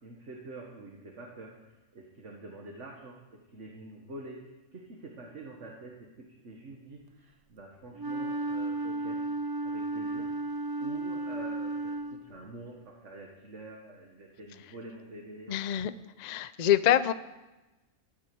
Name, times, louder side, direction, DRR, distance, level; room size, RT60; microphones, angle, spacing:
voice 1, 0.0-1.5 1.9-4.4 4.7-7.0 7.5-9.2 9.6-10.3 10.8-15.6, right 2 dB, 60° right, 0 dB, 2.0 m, -46 dB
Wind instrument woodwind instrument, 7.9-12.5, right 2 dB, 20° right, 0.8 m, -34 dB
voice 2, 15.5-15.9 16.2-17.1, left 11 dB, 50° left, 14 dB, 0.5 m, -25 dB
14.5 x 11.5 x 6.9 m, 1.1 s
omnidirectional pair, 1.4 m